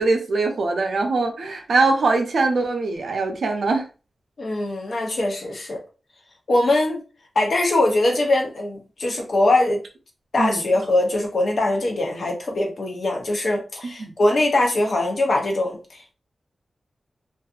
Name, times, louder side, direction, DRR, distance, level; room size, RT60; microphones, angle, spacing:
voice 1, 0.0-3.9 10.4-10.6 14.0-14.1, right 3 dB, 70° right, 3 dB, 0.5 m, -22 dB
voice 2, 4.4-5.8 6.5-7.0 7.4-9.8 10.3-16.1, left 2 dB, 55° left, 1 dB, 0.7 m, -22 dB
2.5 x 2.4 x 2.3 m, 0.34 s
wide cardioid pair, 180°, 0 cm